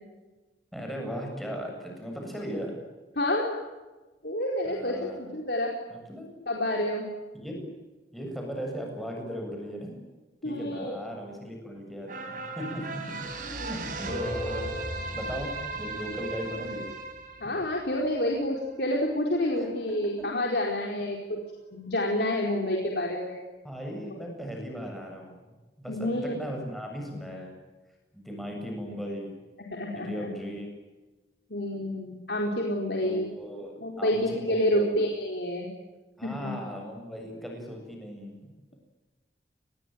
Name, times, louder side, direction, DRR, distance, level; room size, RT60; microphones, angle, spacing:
voice 1, 0.7-2.8 4.6-5.4 5.9-6.3 7.3-7.7 8.1-10.0 10.4-14.7 15.1-16.8 19.6-19.7 23.6-27.5 28.1-29.3 29.9-30.8 33.0-35.1 36.2-38.5, equal, ahead, 1 dB, 7.6 m, -37 dB
voice 2, 3.2-3.6 4.2-5.7 6.5-7.1 10.4-10.9 13.6-13.7 17.4-21.4 21.7-23.4 25.9-26.3 29.7-30.3 31.5-33.3 33.8-35.7 36.4-36.5, left 1 dB, 70° left, 0 dB, 4.5 m, -28 dB
sound 1, 12.1-18.7 19.1-19.2, right 2 dB, 50° right, 5.5 m, -36 dB
27.5 x 21.5 x 9.3 m, 1.2 s
head